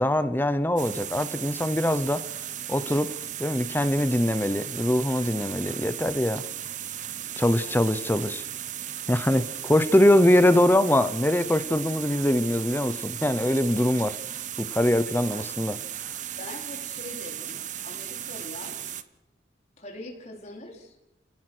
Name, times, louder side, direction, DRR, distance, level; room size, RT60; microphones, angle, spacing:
voice 1, 0.0-2.3 2.7-6.4 7.4-8.4 9.1-14.2 14.6-15.8, left 1 dB, 10° left, 0.8 m, -23 dB
sound 1, 0.8-19.0, right 10 dB, 45° right, 1.0 m, -36 dB
voice 2, 7.4-8.0 8.3-8.4 9.3-9.5 16.3-19.0 19.8-20.9, left 1 dB, 40° left, 4.2 m, -43 dB
30.0 x 18.0 x 6.2 m
head